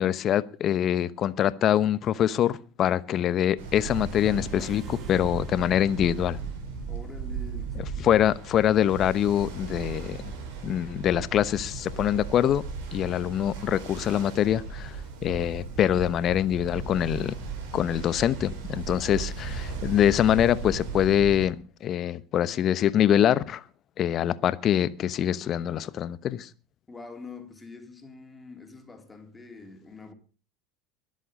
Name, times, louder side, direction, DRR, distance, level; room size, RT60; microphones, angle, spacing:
voice 1, 0.0-6.4 8.0-10.2 10.6-12.6 12.9-15.0 15.2-17.3 17.7-23.6 24.0-26.5, left 10 dB, 40° left, 0.9 m, -24 dB
Ocean, 3.6-21.5, right 5 dB, 65° right, 5.0 m, -36 dB
sound 1, 4.1-6.9, right 5 dB, 35° right, 1.6 m, -46 dB
voice 2, 6.9-7.8 26.9-30.1, left 4 dB, 15° left, 3.5 m, -45 dB
22.5 x 7.7 x 5.3 m
hypercardioid pair, 80°, 0 cm